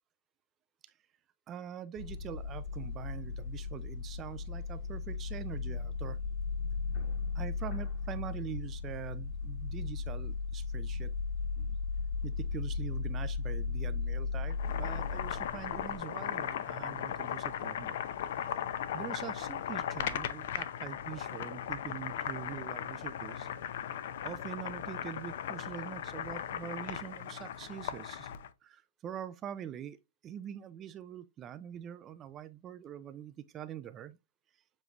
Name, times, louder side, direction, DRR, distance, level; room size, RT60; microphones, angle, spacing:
voice 1, 1.5-6.2 7.3-11.1 11.6-11.8 12.2-18.0 18.9-23.5 23.9-28.3 28.6-30.0 30.2-34.2, right 10 dB, 20° right, 0.3 m, -44 dB
sound 1, 2.0-16.0, left 4 dB, 30° left, 1.4 m, -36 dB
Boiling, 14.4-28.5, left 10 dB, 55° left, 0.5 m, -37 dB
7.1 x 3.1 x 2.3 m
hypercardioid pair, 150°, 0 cm